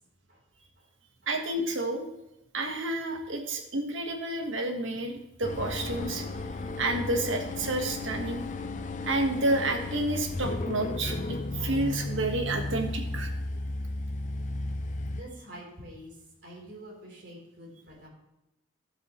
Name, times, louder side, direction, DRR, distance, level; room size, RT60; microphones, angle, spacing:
voice 1, 1.3-2.1 2.5-6.2 6.8-8.4 9.0-13.3, right 2 dB, 80° right, 4 dB, 1.4 m, -30 dB
sound 1, 5.4-15.2, left 2 dB, 40° left, 0.6 m, -34 dB
voice 2, 15.1-18.1, right 1 dB, 60° right, -2 dB, 3.6 m, -47 dB
12.0 x 8.0 x 3.1 m, 0.92 s
head